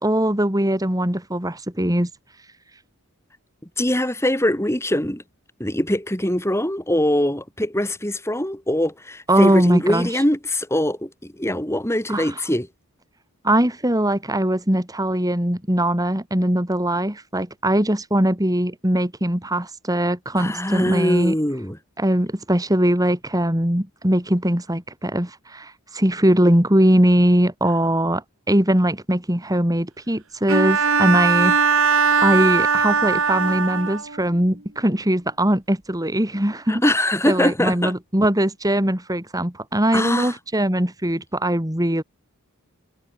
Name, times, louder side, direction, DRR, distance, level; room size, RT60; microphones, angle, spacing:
voice 1, 0.0-2.1 9.3-10.1 12.1-12.3 13.4-21.3 22.0-31.6 32.2-36.8 37.3-42.0, right 1 dB, 15° right, 3.1 m, -21 dB
voice 2, 3.8-5.2 5.6-12.7 20.4-21.8 36.7-37.9 39.9-40.3, left 1 dB, 10° left, 3.8 m, -22 dB
Bowed string instrument, 30.5-34.2, right 5 dB, 60° right, 3.6 m, -19 dB
head